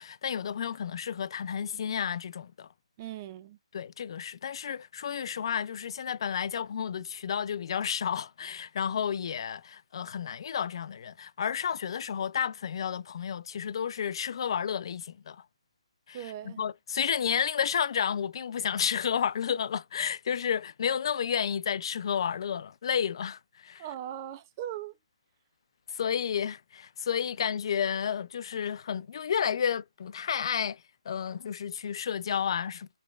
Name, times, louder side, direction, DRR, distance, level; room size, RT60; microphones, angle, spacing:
voice 1, 0.0-2.7 3.7-15.4 16.1-23.8 25.9-32.9, left 8 dB, 50° left, 0.3 m, -31 dB
voice 2, 3.0-3.6 16.1-16.6 23.8-24.9, right 11 dB, 30° right, 0.3 m, -39 dB
5.4 x 3.2 x 2.3 m
hypercardioid pair, 150°, 3 cm